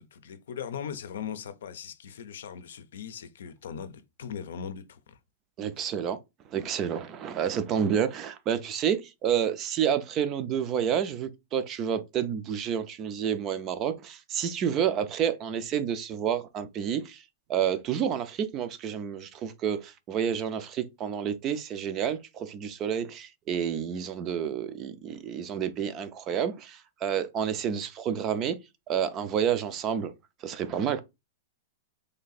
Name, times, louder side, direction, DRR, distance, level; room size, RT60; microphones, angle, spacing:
voice 1, 0.0-5.2 5.8-5.9, left 7 dB, 80° left, 0.6 m, -39 dB
voice 2, 5.6-6.2 6.5-17.2 17.5-28.6 28.9-30.1 30.4-31.0, right 8 dB, 25° right, 0.4 m, -29 dB
3.3 x 2.7 x 4.0 m
supercardioid pair, 160°, 0 cm